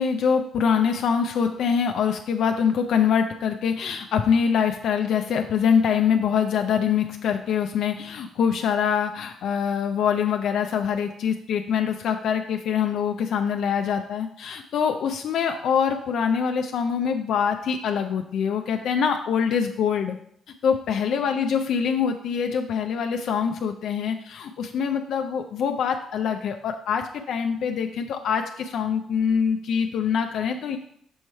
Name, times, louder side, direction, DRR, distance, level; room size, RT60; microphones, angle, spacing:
voice 1, 0.0-20.2 20.6-30.8, left 7 dB, 70° left, 5 dB, 0.4 m, -24 dB
6.3 x 3.1 x 5.5 m, 0.68 s
cardioid pair, 90°, 0 cm